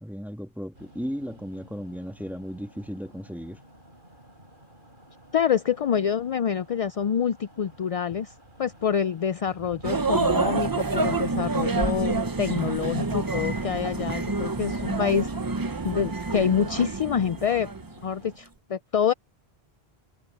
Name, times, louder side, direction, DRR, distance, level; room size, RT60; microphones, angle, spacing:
voice 1, 0.0-3.6, equal, ahead, 1.5 m, -35 dB
sound 1, 0.7-18.4, right 1 dB, 55° right, 8.4 m, -52 dB
voice 2, 5.3-8.3 8.6-15.3 15.8-17.7 18.0-19.1, left 8 dB, 55° left, 0.4 m, -26 dB
sound 2, 9.8-18.1, right 3 dB, 25° right, 0.6 m, -27 dB
omnidirectional pair, 1.1 m